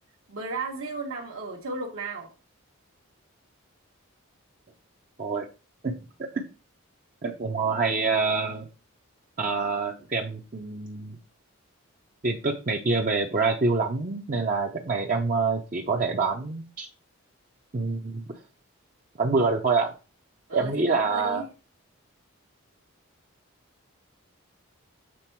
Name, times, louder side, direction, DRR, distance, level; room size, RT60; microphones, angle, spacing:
voice 1, 0.3-2.3 20.5-21.4, right 3 dB, 70° right, -3 dB, 1.2 m, -34 dB
voice 2, 7.2-8.7 9.4-11.2 12.2-16.9 17.7-18.2 19.2-19.9 20.5-21.4, right 4 dB, 40° right, 1 dB, 0.6 m, -26 dB
7.6 x 3.6 x 4.5 m, 0.32 s
head